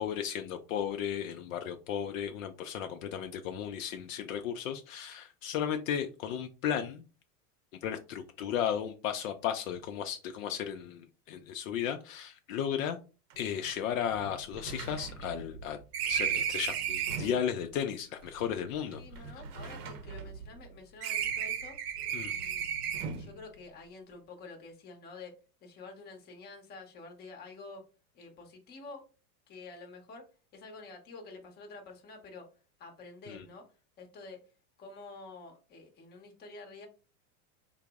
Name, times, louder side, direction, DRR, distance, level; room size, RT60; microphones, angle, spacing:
voice 1, 0.0-7.0 7.8-13.0 13.4-15.8 16.1-19.0 22.1-22.3 33.3-33.4, left 9 dB, 60° left, 6 dB, 0.5 m, -34 dB
sound 1, 13.3-13.4 13.6-13.7 14.1-17.4 18.3-20.7 21.0-23.3, right 8 dB, 85° right, 0.8 m, -35 dB
voice 2, 19.0-21.8 22.3-22.7 23.1-25.3 25.6-27.8 28.1-29.0 29.5-30.2 30.5-32.5 32.8-33.6 34.0-34.4 34.8-36.9, left 3 dB, 20° left, 2 dB, 0.8 m, -48 dB
3.8 x 2.0 x 3.4 m, 0.34 s
supercardioid pair, 145°, 45 cm